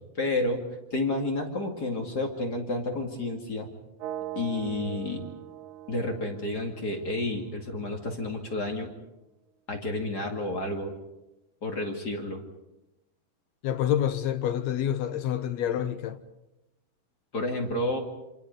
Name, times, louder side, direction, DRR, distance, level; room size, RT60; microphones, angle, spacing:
voice 1, 0.2-3.7 4.4-5.3 5.9-8.9 9.7-11.0 11.6-12.4 17.3-18.0, left 2 dB, 30° left, 2.4 m, -30 dB
sound 1, 4.0-7.9, right 12 dB, 70° right, 2.2 m, -41 dB
voice 2, 13.6-16.2, left 10 dB, 65° left, 1.9 m, -27 dB
26.5 x 26.0 x 5.3 m
omnidirectional pair, 4.0 m